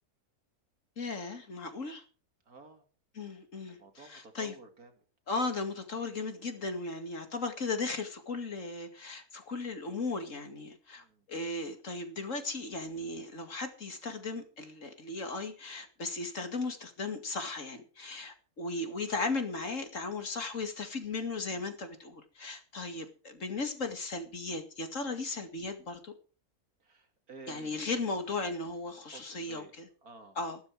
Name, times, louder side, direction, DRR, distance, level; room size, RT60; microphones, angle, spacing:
voice 1, 1.0-2.0 3.1-4.6 5.3-26.1 27.5-29.9 30.4-30.6, left 3 dB, 55° left, 2.5 m, -36 dB
voice 2, 2.5-2.8 3.7-4.9 11.0-11.3 26.8-27.7 29.0-29.7 30.0-30.4, right 3 dB, 70° right, 3.1 m, -52 dB
14.5 x 12.5 x 4.7 m
omnidirectional pair, 1.6 m